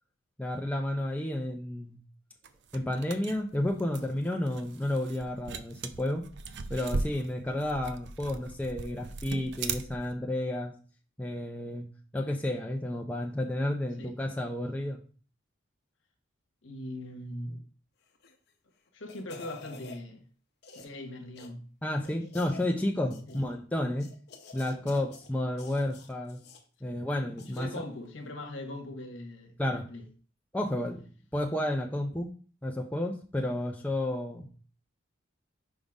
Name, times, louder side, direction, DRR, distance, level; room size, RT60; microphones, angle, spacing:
voice 1, 0.4-2.0 2.7-6.2 6.7-10.7 11.2-11.9 12.1-15.0 21.8-24.1 24.5-26.4 26.8-27.7 29.6-29.9 30.5-31.0 31.3-32.3 32.6-34.5, left 1 dB, 10° left, 0.6 m, -31 dB
sound 1, 2.4-10.2, right 4 dB, 60° right, 0.5 m, -38 dB
voice 2, 16.6-17.6 18.9-20.3 20.7-21.6 23.3-23.4 24.7-25.1 26.9-27.0 27.5-30.1 33.5-33.6, left 1 dB, 75° left, 1.2 m, -41 dB
sound 2, 18.1-18.5 18.9-20.0 20.6-21.0 21.4-21.5 22.0-22.7 23.1-23.5 24.0-25.3 25.6-26.6 27.4-27.7 28.1-28.2, left 4 dB, 55° left, 0.8 m, -49 dB
5.3 x 3.8 x 4.8 m
head